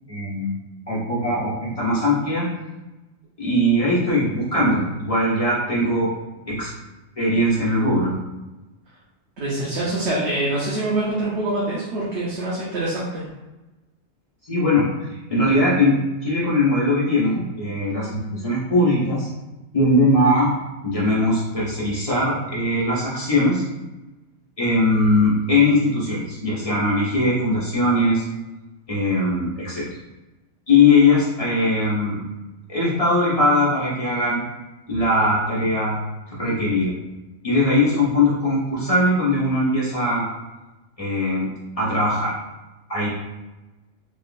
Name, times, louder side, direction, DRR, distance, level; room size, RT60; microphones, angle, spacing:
voice 1, 0.1-0.6 0.9-2.5 3.4-6.1 6.5-6.7 7.2-8.2 14.4-19.3 19.7-20.5 20.8-23.6 24.6-28.3 28.9-29.8 30.7-32.2 32.7-34.4 34.9-36.0 36.3-36.9 37.4-40.3 41.0-41.5 41.8-42.3 42.9-43.1, left 1 dB, 30° left, -7 dB, 1.1 m, -20 dB
voice 2, 9.4-13.2, right 2 dB, 65° right, -7 dB, 1.1 m, -25 dB
3.7 x 3.1 x 2.4 m, 1.1 s
omnidirectional pair, 1.3 m